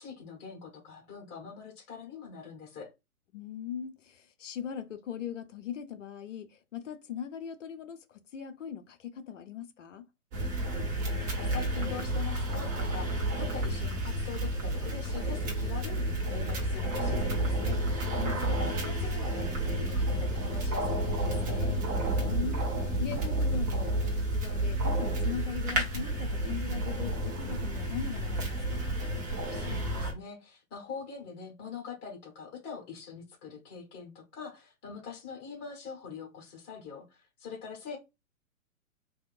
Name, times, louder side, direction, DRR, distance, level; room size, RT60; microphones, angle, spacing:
voice 1, 0.0-2.9 10.7-10.9 11.3-17.8 18.4-21.8 29.5-38.0, left 6 dB, 25° left, 1.3 m, -43 dB
voice 2, 3.3-10.1 18.1-18.4 22.1-29.0, left 8 dB, 55° left, 0.7 m, -40 dB
sound 1, 10.3-30.1, right 1 dB, 30° right, 1.2 m, -30 dB
3.6 x 2.7 x 2.5 m
figure-of-eight pair, 115°, 43 cm